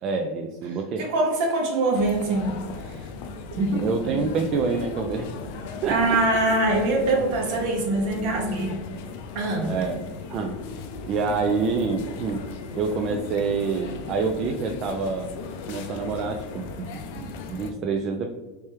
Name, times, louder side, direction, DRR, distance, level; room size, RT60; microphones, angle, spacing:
voice 1, 0.0-1.1 3.8-5.3 5.8-6.1 9.6-10.0 10.3-10.6 11.1-12.5 12.7-15.4 15.7-18.3, right 4 dB, 45° right, 3 dB, 0.4 m, -27 dB
voice 2, 1.0-2.6 2.8-3.0 3.5-3.8 4.1-4.2 5.9-8.8 9.3-9.7, right 2 dB, 65° right, 0 dB, 1.1 m, -23 dB
sound 1, 1.9-17.7, left 4 dB, 65° left, 0.4 m, -37 dB
3.3 x 3.2 x 3.0 m, 1.2 s
hypercardioid pair, 100°, 0 cm